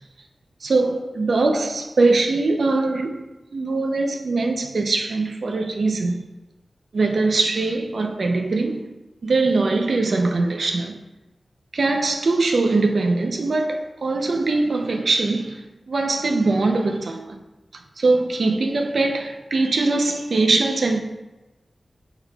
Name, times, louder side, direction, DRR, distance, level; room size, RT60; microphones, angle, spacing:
voice 1, 0.6-3.2 3.5-6.2 6.9-8.8 9.2-11.0 11.7-17.4 18.0-21.0, right 3 dB, 70° right, 0.6 m, -21 dB
7.2 x 5.7 x 2.3 m
wide cardioid pair, 110°, 0 cm